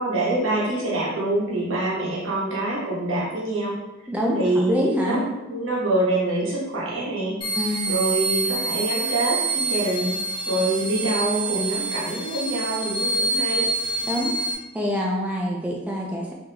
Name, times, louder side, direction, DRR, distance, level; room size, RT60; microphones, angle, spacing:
voice 1, 0.0-3.8 4.3-7.4 7.9-10.2 10.4-13.7, right 2 dB, 70° right, -5 dB, 1.1 m, -25 dB
voice 2, 4.1-5.2 7.5-8.0 14.0-14.3 14.7-16.3, equal, 5° right, -3 dB, 0.4 m, -25 dB
sound 1, 7.4-14.5, right 2 dB, 25° left, 0.8 m, -26 dB
3.7 x 2.9 x 2.8 m, 1.0 s
head